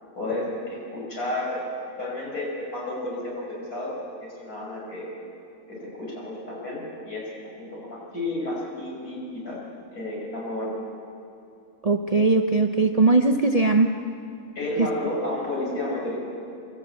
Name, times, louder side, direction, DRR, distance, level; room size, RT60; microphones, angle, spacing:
voice 1, 0.2-1.7 2.0-5.1 5.7-7.3 7.6-9.6 9.9-10.8 14.6-16.2, left 1 dB, 85° left, -4 dB, 6.2 m, -31 dB
voice 2, 11.8-14.0 14.8-14.9, right 3 dB, 35° right, 5 dB, 0.6 m, -20 dB
25.5 x 12.5 x 8.2 m, 2.7 s
omnidirectional pair, 1.6 m